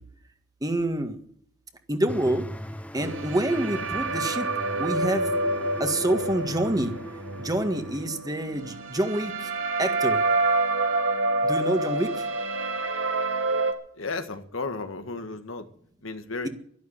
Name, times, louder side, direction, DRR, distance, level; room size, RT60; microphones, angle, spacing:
voice 1, 0.6-1.2 1.9-2.5 2.9-4.5 4.8-5.3 5.8-6.9 7.4-9.5 9.8-10.2 11.4-12.3, right 1 dB, 20° right, 1.7 m, -27 dB
sound 1, 2.1-8.1, equal, 5° left, 0.8 m, -39 dB
sound 2, 3.0-13.7, right 2 dB, 75° right, 1.9 m, -28 dB
voice 2, 14.0-15.7 16.0-16.5, left 3 dB, 85° left, 1.6 m, -33 dB
12.0 x 12.0 x 8.8 m
head